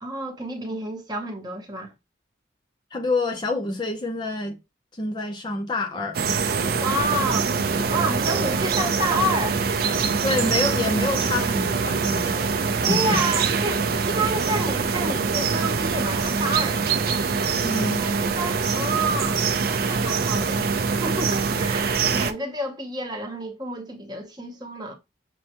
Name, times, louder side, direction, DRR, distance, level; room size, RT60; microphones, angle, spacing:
voice 1, 0.0-1.9 6.8-7.5 7.9-9.6 12.8-16.8 18.0-19.4 19.9-24.9, right 1 dB, 20° right, 0.8 m, -29 dB
voice 2, 2.9-4.6 4.9-6.4 10.2-12.5 12.8-13.2 17.6-18.1, left 2 dB, 25° left, 0.5 m, -27 dB
sound 1, 6.1-22.3, right 5 dB, 55° right, 0.4 m, -24 dB
6.2 x 2.2 x 2.8 m
head